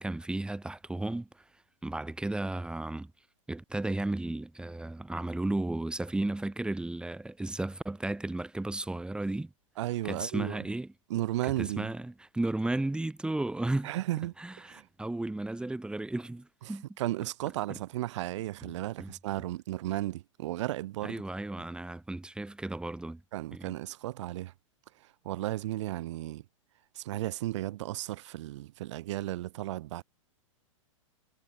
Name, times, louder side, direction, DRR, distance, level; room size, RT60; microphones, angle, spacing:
voice 1, 0.0-1.4 1.8-3.1 3.5-9.5 10.0-10.9 11.4-13.9 14.4-16.9 17.7-17.8 18.6-18.7 19.0-19.1 21.0-23.2 23.5-23.7, right 2 dB, 5° right, 3.2 m, -34 dB
voice 2, 9.8-10.6 11.1-11.9 13.8-14.9 16.7-21.2 23.3-24.5 25.0-26.4 26.9-30.0, right 15 dB, 60° right, 1.4 m, -34 dB
hypercardioid pair, 110°, 17 cm